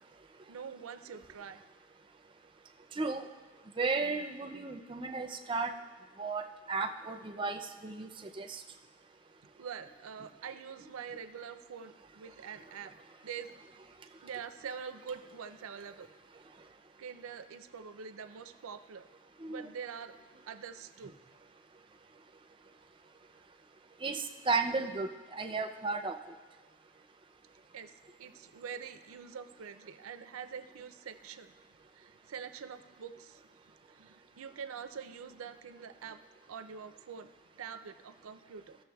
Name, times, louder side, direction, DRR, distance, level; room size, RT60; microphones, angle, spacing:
voice 1, 0.5-1.6 9.6-12.9 13.2-13.5 14.2-16.1 17.0-19.1 19.5-20.2 20.5-21.1 27.7-31.5 31.9-33.4 33.9-36.2 36.5-37.3 37.6-38.8, right 7 dB, 85° right, 10 dB, 0.4 m, -45 dB
voice 2, 3.0-3.3 3.8-5.7 6.2-8.1 8.4-8.6 19.4-19.7 24.0-26.2, right 4 dB, 25° right, 5 dB, 0.4 m, -34 dB
15.5 x 6.7 x 2.3 m, 1.3 s
head